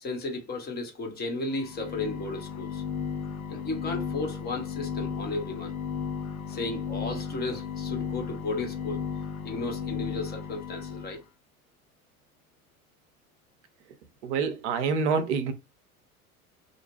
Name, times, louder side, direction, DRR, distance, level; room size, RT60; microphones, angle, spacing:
voice 1, 0.0-2.8 3.5-5.7 6.5-9.0 9.4-11.2, left 2 dB, 20° left, 0.8 m, -34 dB
sound 1, 1.5-11.2, left 7 dB, 75° left, 0.6 m, -35 dB
voice 2, 14.2-15.5, right 5 dB, 50° right, 0.6 m, -26 dB
2.4 x 2.1 x 3.0 m
figure-of-eight pair, 75°, 43 cm